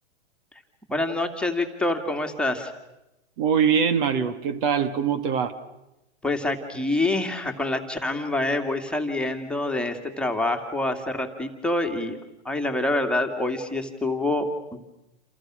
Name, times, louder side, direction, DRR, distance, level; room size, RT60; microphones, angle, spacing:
voice 1, 0.9-2.7 6.2-12.2 12.4-14.8, left 2 dB, 5° left, 3 dB, 2.4 m, -26 dB
voice 2, 3.4-5.5, right 7 dB, 45° right, 12 dB, 2.1 m, -23 dB
29.0 x 28.0 x 6.3 m, 0.94 s
hypercardioid pair, 135°, 35 cm